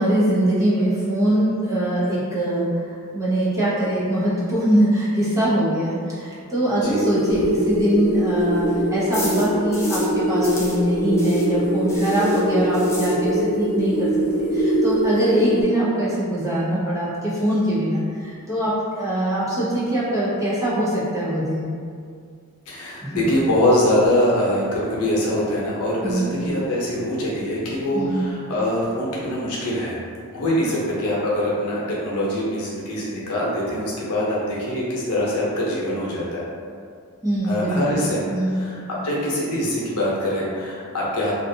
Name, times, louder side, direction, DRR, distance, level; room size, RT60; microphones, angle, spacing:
voice 1, 0.0-2.7 3.1-14.1 14.4-21.7 23.0-23.2 26.0-26.4 27.9-28.3 37.2-38.0 38.3-38.6, right 1 dB, 15° right, -10 dB, 0.7 m, -22 dB
sound 1, 6.8-15.6, equal, 30° left, 0.7 m, -22 dB
sound 2, 7.3-10.2 10.4-13.6 13.9-14.0 14.3-14.4 14.6-15.1, left 2 dB, 10° left, 0.3 m, -36 dB
voice 2, 22.7-30.0 30.3-36.4 37.4-41.3, left 1 dB, 90° left, -6 dB, 0.7 m, -23 dB
2.5 x 2.3 x 2.6 m, 2.1 s
head